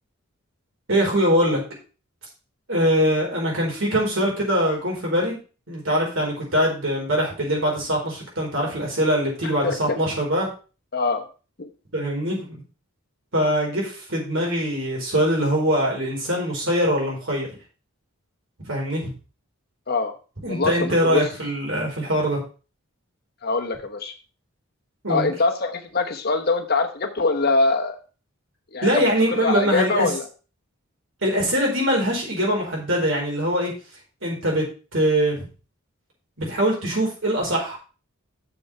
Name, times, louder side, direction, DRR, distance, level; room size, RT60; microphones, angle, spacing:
voice 1, 0.9-1.6 2.7-5.4 5.7-10.5 11.9-12.6 13.3-17.5 18.7-19.1 20.4-22.4 25.0-25.3 28.8-30.1 31.2-33.7 34.2-34.7 34.9-35.5 36.4-37.8, equal, 60° right, -2 dB, 4.4 m, -22 dB
voice 2, 9.6-10.0 10.9-11.2 11.6-11.7 19.9-20.1 20.5-21.2 23.4-24.1 25.1-28.0 28.7-29.1 29.4-30.2, left 3 dB, 45° left, 5 dB, 1.1 m, -23 dB
7.1 x 6.3 x 5.5 m, 0.35 s
head